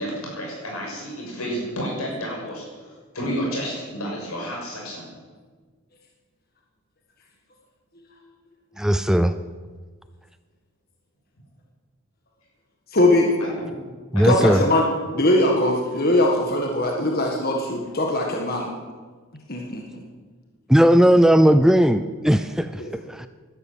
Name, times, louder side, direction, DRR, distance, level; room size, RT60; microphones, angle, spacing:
voice 1, 0.0-2.7 3.1-5.0 13.4-13.8 14.1-14.6, equal, 85° left, -2 dB, 6.6 m, -30 dB
voice 2, 8.8-9.4 14.1-14.6 20.7-23.3, equal, 5° right, 11 dB, 0.4 m, -17 dB
voice 3, 12.9-13.4 14.2-14.8 15.1-18.7 19.5-20.0 22.8-22.9, left 1 dB, 45° left, 0 dB, 1.7 m, -21 dB
12.0 x 12.0 x 8.9 m, 1.5 s
head